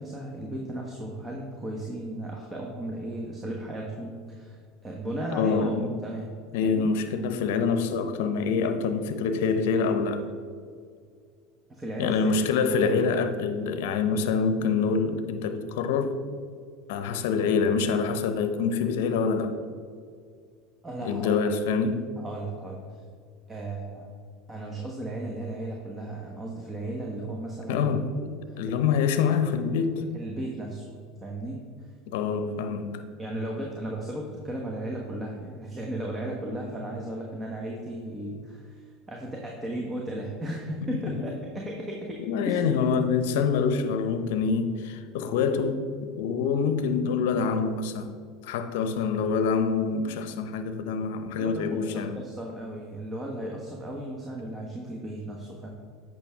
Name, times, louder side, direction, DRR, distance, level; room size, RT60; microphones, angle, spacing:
voice 1, 0.0-6.3 6.6-6.9 11.7-12.4 20.8-21.5 22.2-22.8 23.5-24.1 24.5-27.9 28.8-29.1 29.9-31.6 33.2-42.7 51.4-55.7, right 1 dB, 20° right, 1.1 m, -35 dB
voice 2, 5.3-5.9 6.5-10.3 12.0-16.2 16.9-19.6 21.0-22.1 27.7-28.1 28.6-30.0 32.1-33.0 40.8-41.3 42.2-45.9 46.2-48.2 48.4-52.2, left 5 dB, 70° left, 0.6 m, -26 dB
8.4 x 6.0 x 3.5 m
hypercardioid pair, 85°, 0 cm